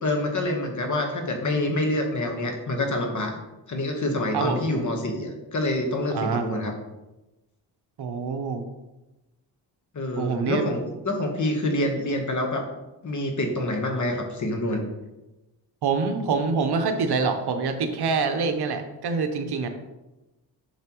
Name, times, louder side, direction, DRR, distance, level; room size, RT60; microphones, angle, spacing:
voice 1, 0.0-3.4 3.7-6.7 9.9-12.7 13.0-14.8, left 1 dB, 40° left, 3 dB, 1.3 m, -27 dB
voice 2, 6.1-6.5 8.0-8.6 10.2-10.6 15.8-19.7, right 5 dB, 60° right, 6 dB, 0.9 m, -25 dB
7.2 x 5.7 x 3.0 m, 1.0 s
cardioid pair, 100°, 43 cm